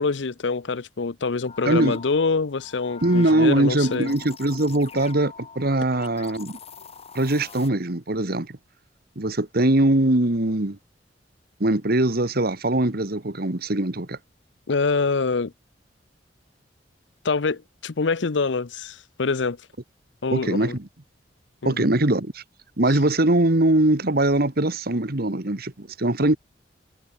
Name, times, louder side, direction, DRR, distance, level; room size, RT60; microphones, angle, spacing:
voice 1, 0.0-4.1 14.7-15.5 17.2-19.6 20.2-20.8 21.6-21.9, left 4 dB, 85° left, 0.7 m, -25 dB
sound 1, 1.5-7.7, left 5 dB, 35° left, 2.0 m, -43 dB
voice 2, 1.7-2.0 3.0-6.6 7.1-8.6 9.2-10.8 11.6-14.2 20.3-20.9 21.6-22.4 22.8-26.4, right 1 dB, 55° right, 1.9 m, -22 dB
head